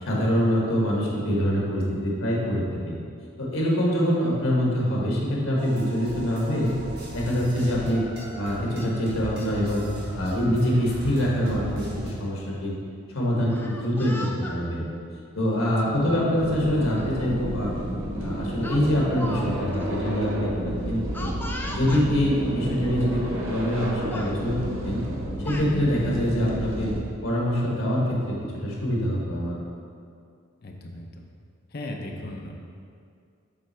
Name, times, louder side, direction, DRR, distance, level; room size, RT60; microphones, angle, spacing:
voice 1, 0.0-2.9 3.4-6.7 7.1-8.1 8.4-9.8 10.2-12.7 13.1-14.8 15.4-17.7 18.2-21.3 21.7-23.2 23.5-25.0 25.4-26.9 27.2-29.5, equal, 80° left, -4 dB, 1.5 m, -25 dB
sound 1, 5.6-12.1, equal, 50° right, 1.5 m, -37 dB
Speech, 13.5-14.6 15.5-15.7 17.0-17.1 17.4-17.7 18.6-19.5 19.7-19.8 21.1-22.1 23.0-23.1 23.4-23.8 24.1-24.3 25.1-25.7, left 1 dB, 10° left, 0.4 m, -37 dB
voice 2, 15.6-15.9 30.6-31.3 31.7-32.5, left 1 dB, 45° left, 1 dB, 0.6 m, -37 dB
sound 2, 16.4-27.0, equal, 75° right, 0.9 m, -31 dB
8.1 x 3.3 x 4.4 m, 2.3 s
head